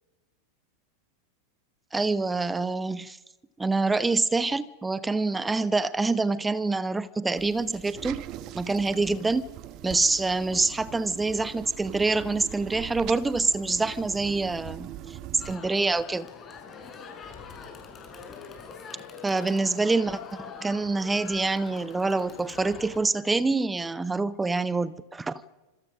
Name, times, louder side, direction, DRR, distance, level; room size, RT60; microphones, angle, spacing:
voice 1, 1.9-3.2 3.6-8.2 8.5-9.4 9.8-16.3 19.2-20.2 20.6-25.4, right 3 dB, 10° right, 1.0 m, -26 dB
sound 1, 7.4-15.6, right 13 dB, 40° right, 1.3 m, -41 dB
Crowd, 15.4-23.0, left 5 dB, 25° left, 6.0 m, -44 dB
27.0 x 26.5 x 6.2 m
figure-of-eight pair, 90°, 0 cm